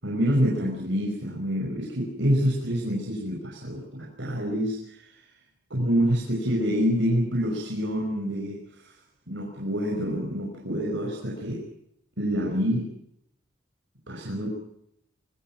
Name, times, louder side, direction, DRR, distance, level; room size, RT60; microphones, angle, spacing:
voice 1, 0.0-5.2 5.7-8.9 9.3-11.7 12.2-12.9 14.1-14.5, equal, 70° right, -2 dB, 5.6 m, -27 dB
24.5 x 24.5 x 6.0 m, 0.76 s
head